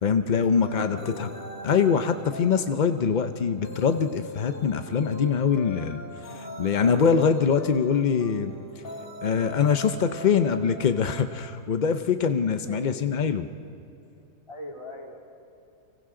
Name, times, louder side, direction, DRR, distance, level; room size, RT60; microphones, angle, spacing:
voice 1, 0.0-1.3 1.6-6.0 6.3-8.5 9.2-13.5, left 6 dB, 80° left, 9 dB, 0.4 m, -23 dB
sound 1, 0.6-11.4, left 1 dB, 35° left, 2.1 m, -40 dB
voice 2, 0.7-1.6 12.5-13.0 14.5-15.2, equal, 20° left, 0 dB, 2.6 m, -41 dB
30.0 x 25.0 x 3.8 m, 2.7 s
omnidirectional pair, 1.8 m